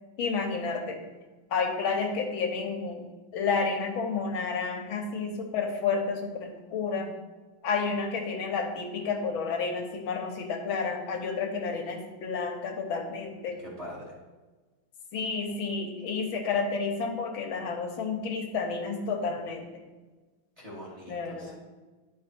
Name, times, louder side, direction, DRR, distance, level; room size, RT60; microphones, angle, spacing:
voice 1, 0.2-1.0 1.5-3.0 3.3-7.1 7.6-13.6 15.1-19.6 21.1-21.5, left 5 dB, 80° left, 3 dB, 1.8 m, -30 dB
voice 2, 13.6-14.2 20.6-21.5, left 1 dB, 20° right, -4 dB, 1.9 m, -43 dB
10.5 x 4.7 x 4.4 m, 1.3 s
omnidirectional pair, 2.2 m